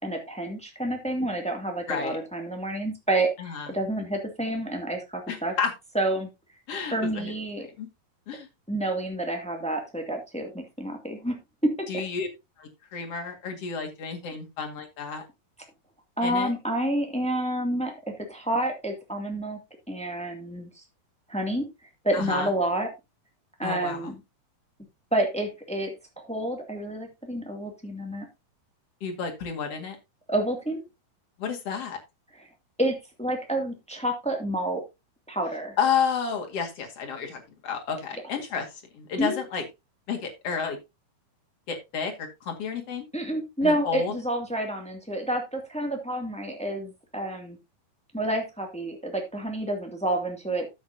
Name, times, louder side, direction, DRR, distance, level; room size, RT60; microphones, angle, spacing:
voice 1, 0.0-5.5 5.9-6.3 6.9-7.7 8.7-12.0 16.2-17.9 18.3-19.6 19.9-20.7 21.3-21.7 22.0-22.9 23.6-24.2 25.1-28.2 30.3-30.8 32.3-32.5 32.8-34.8 35.3-35.8 39.2-39.4 43.1-47.6 48.1-50.7, right 1 dB, 5° left, 3 dB, 1.2 m, -29 dB
voice 2, 5.3-5.7 6.7-7.3 7.8-7.9 8.3-8.5 11.9-12.3 12.6-15.2 16.2-16.5 22.1-22.5 23.6-24.1 29.0-30.0 31.4-32.0 35.8-38.7 38.9-39.6 40.1-40.8 41.7-43.0 43.6-44.1, left 6 dB, 45° left, 3 dB, 2.7 m, -31 dB
12.5 x 8.0 x 2.7 m, 0.23 s
omnidirectional pair, 4.2 m